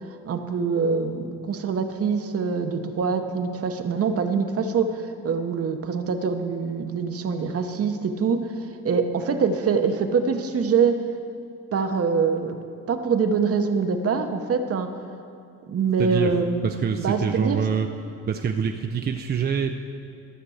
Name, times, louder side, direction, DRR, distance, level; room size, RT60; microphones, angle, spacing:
voice 1, 0.2-11.0 11.7-12.6 12.9-14.9 15.6-16.7 17.0-17.6, right 5 dB, 50° right, 7 dB, 1.0 m, -24 dB
voice 2, 16.0-16.3 16.6-17.9 18.3-19.7, right 7 dB, 35° right, 5 dB, 0.5 m, -25 dB
12.5 x 6.7 x 6.4 m, 2.5 s
cardioid pair, 90°, 30 cm